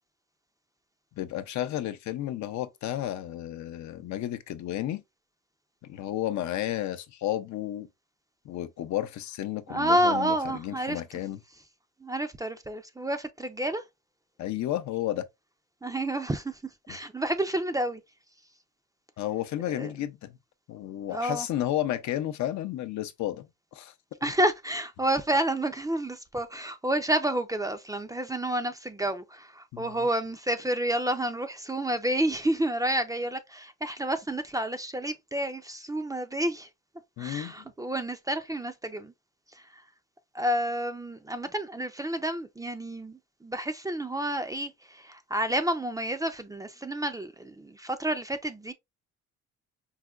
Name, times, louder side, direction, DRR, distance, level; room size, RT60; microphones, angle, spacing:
voice 1, 1.2-5.0 5.8-7.9 8.4-11.4 14.4-15.3 19.2-20.4 20.7-23.5 23.7-23.9 29.7-29.9 37.2-37.5, left 12 dB, 70° left, 0.5 m, -32 dB
voice 2, 9.7-11.0 12.0-13.8 15.8-16.6 16.9-18.0 19.7-19.9 21.1-21.5 24.2-36.7 37.2-39.1 39.5-39.8 40.3-48.7, right 1 dB, 10° right, 0.4 m, -29 dB
4.7 x 2.1 x 2.3 m
cardioid pair, 90°, 30 cm